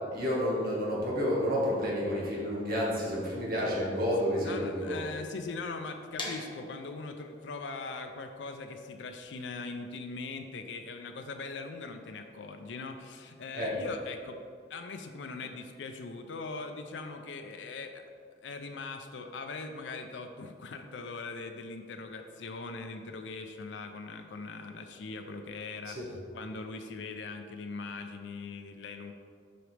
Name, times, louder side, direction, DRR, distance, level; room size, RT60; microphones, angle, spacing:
voice 1, 0.1-5.0 13.5-13.8 25.9-26.1, equal, 55° right, -5 dB, 1.8 m, -30 dB
voice 2, 4.4-14.4 14.7-18.0 18.4-26.0 26.3-29.1, left 3 dB, 85° left, 6 dB, 0.5 m, -41 dB
sound 1, 6.2-12.0, left 2 dB, 30° left, 1.0 m, -45 dB
7.7 x 5.2 x 3.3 m, 2.2 s
head